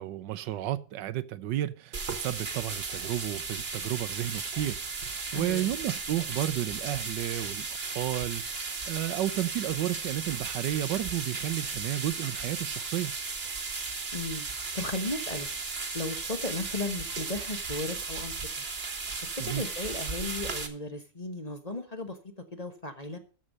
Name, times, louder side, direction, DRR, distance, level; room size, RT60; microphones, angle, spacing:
voice 1, 0.0-13.1 19.4-19.7, right 13 dB, 85° right, 1.4 m, -32 dB
sound 1, 1.9-20.7, right 4 dB, 35° right, 1.5 m, -35 dB
voice 2, 5.3-5.7 14.1-14.5 14.7-15.5 15.9-18.3 19.2-22.2 22.5-23.2, left 2 dB, 25° left, 1.2 m, -35 dB
13.5 x 5.3 x 6.5 m
omnidirectional pair, 1.9 m